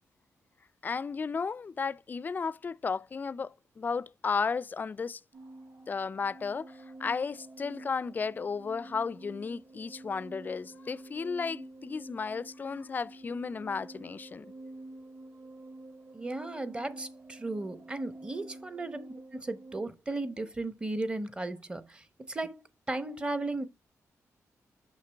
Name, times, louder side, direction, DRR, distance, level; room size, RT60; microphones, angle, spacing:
voice 1, 0.8-5.2 5.9-14.5, left 5 dB, 30° left, 0.3 m, -34 dB
sound 1, 5.3-19.8, right 2 dB, 50° right, 2.3 m, -49 dB
voice 2, 16.1-23.7, right 2 dB, 15° right, 0.8 m, -36 dB
6.5 x 5.9 x 3.3 m
wide cardioid pair, 125°, 6 cm